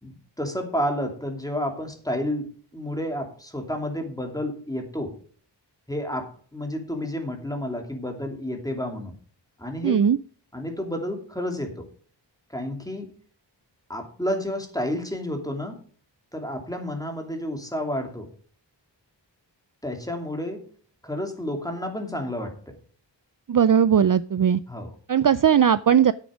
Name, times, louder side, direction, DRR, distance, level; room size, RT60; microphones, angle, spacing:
voice 1, 0.0-2.5 2.7-5.2 5.9-9.1 9.6-10.0 10.5-11.8 12.5-13.1 13.9-15.8 16.3-18.3 19.8-20.6 21.0-22.8 24.7-24.9, left 1 dB, 10° left, 3 dB, 2.8 m, -30 dB
voice 2, 9.8-10.2 23.5-24.6 25.1-26.1, right 8 dB, 50° right, 15 dB, 0.4 m, -18 dB
10.5 x 8.6 x 5.0 m, 0.43 s
wide cardioid pair, 60°, 44 cm